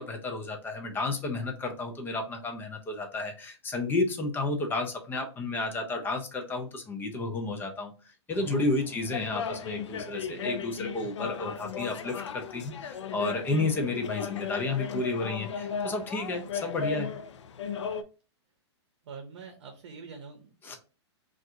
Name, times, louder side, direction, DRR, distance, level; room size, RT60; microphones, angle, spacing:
voice 1, 0.0-7.9 8.3-17.1 20.6-20.8, left 2 dB, 15° left, 3 dB, 0.6 m, -31 dB
sound 1, 8.3-18.0, left 6 dB, 85° left, 0.5 m, -36 dB
voice 2, 8.4-9.0 19.0-20.8, right 6 dB, 65° right, 5 dB, 0.8 m, -45 dB
2.6 x 2.5 x 3.6 m, 0.34 s
hypercardioid pair, 140°, 15 cm